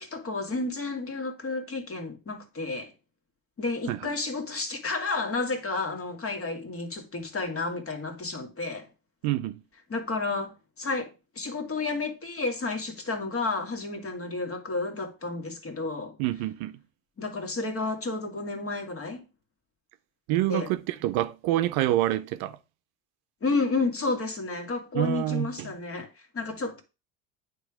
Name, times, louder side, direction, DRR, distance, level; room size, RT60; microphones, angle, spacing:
voice 1, 0.0-2.9 3.6-8.9 9.9-16.2 17.2-19.2 20.5-20.7 23.4-26.1 26.3-26.8, left 3 dB, 35° left, 1.9 m, -31 dB
voice 2, 9.2-9.6 16.2-16.8 20.3-22.6 24.9-25.7, right 14 dB, 65° right, 0.7 m, -27 dB
8.9 x 3.4 x 4.9 m
hypercardioid pair, 70°, 41 cm